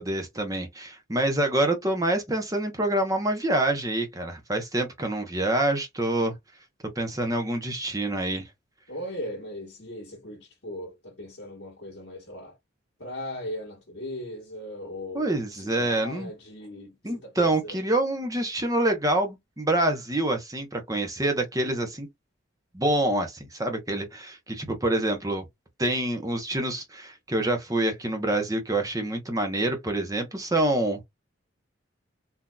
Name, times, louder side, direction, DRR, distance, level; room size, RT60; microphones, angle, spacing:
voice 1, 0.0-6.3 7.0-8.5 15.1-16.3 17.0-22.1 22.7-25.4 25.8-31.0, right 1 dB, 15° right, 0.8 m, -26 dB
voice 2, 8.9-12.6 13.0-17.8, left 1 dB, 60° left, 1.2 m, -38 dB
3.7 x 2.8 x 2.2 m
head